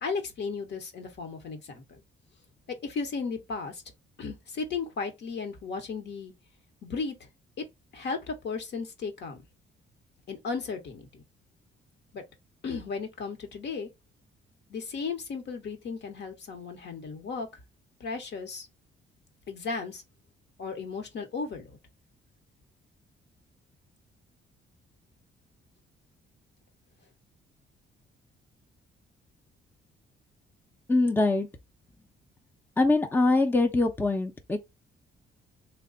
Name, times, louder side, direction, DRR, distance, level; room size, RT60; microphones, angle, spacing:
voice 1, 0.0-2.0 2.8-3.8 4.2-6.3 6.8-7.1 7.6-7.7 7.9-9.4 10.3-11.2 12.1-12.2 12.6-13.9 14.7-17.5 18.0-18.7 19.5-20.0 20.6-21.8, left 4 dB, 60° left, 1.1 m, -35 dB
voice 2, 30.9-31.5 32.8-34.6, left 2 dB, 10° left, 0.5 m, -23 dB
3.2 x 2.2 x 3.8 m
cardioid pair, 90°, 20 cm